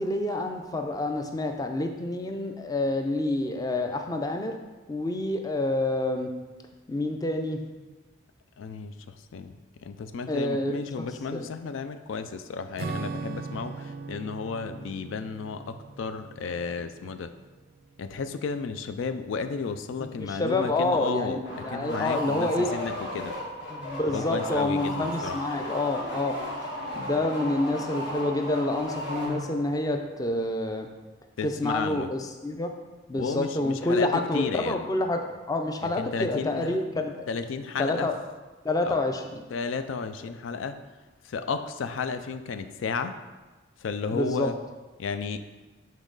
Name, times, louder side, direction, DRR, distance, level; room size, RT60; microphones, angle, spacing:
voice 1, 0.0-4.5 4.9-6.3 6.9-7.6 10.3-11.5 20.0-22.8 23.7-26.3 27.0-30.9 31.4-32.7 33.1-37.1 37.8-38.2 38.6-39.4 44.1-44.5, left 2 dB, 20° left, 5 dB, 0.4 m, -28 dB
voice 2, 8.6-9.0 9.3-9.5 9.8-17.3 18.0-21.4 21.7-23.3 24.1-25.4 31.4-32.1 33.2-34.9 35.8-36.8 37.3-38.1 38.9-39.0 39.5-40.8 41.2-43.1 43.8-44.5 45.0-45.4, left 5 dB, 85° left, 10 dB, 0.4 m, -33 dB
Acoustic guitar / Strum, 12.8-17.6, right 4 dB, 50° right, 0.3 m, -39 dB
sound 1, 21.4-29.8, equal, 60° left, 1.6 m, -35 dB
7.3 x 4.0 x 3.8 m, 1.2 s
head